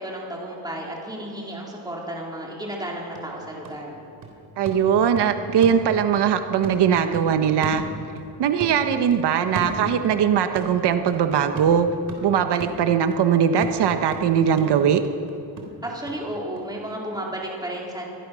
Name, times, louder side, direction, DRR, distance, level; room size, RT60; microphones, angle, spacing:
voice 1, 0.0-4.0 15.8-18.1, right 1 dB, 10° right, -2 dB, 4.1 m, -33 dB
sound 1, 3.2-6.3 6.6-8.3 8.6-10.2 10.6-16.2 16.6-16.7, right 2 dB, 60° right, 3.5 m, -36 dB
voice 2, 4.6-7.8 8.4-11.9 12.2-15.0, right 8 dB, 90° right, 8 dB, 1.2 m, -20 dB
25.0 x 21.0 x 6.3 m, 2.7 s
wide cardioid pair, 165°, 39 cm